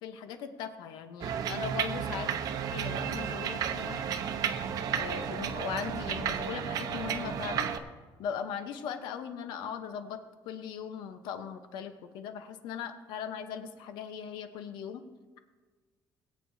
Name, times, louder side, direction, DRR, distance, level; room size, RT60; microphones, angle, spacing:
voice 1, 0.0-2.3 2.7-4.0 5.0-7.7 8.2-15.0, left 7 dB, 85° left, 8 dB, 0.9 m, -39 dB
sound 1, 1.2-7.8, right 8 dB, 55° right, 0.7 m, -33 dB
21.5 x 8.3 x 2.7 m, 1.4 s
cardioid pair, 140°, 7 cm